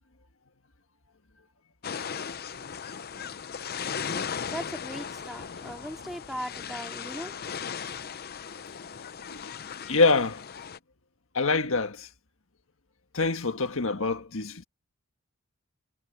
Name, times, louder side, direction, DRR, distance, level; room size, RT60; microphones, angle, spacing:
sound 1, 1.8-10.8, left 7 dB, 45° left, 0.7 m, -37 dB
voice 1, 4.1-8.1, equal, ahead, 3.1 m, -40 dB
voice 2, 9.9-10.5 11.3-12.1 13.1-14.6, left 3 dB, 65° left, 1.6 m, -25 dB
head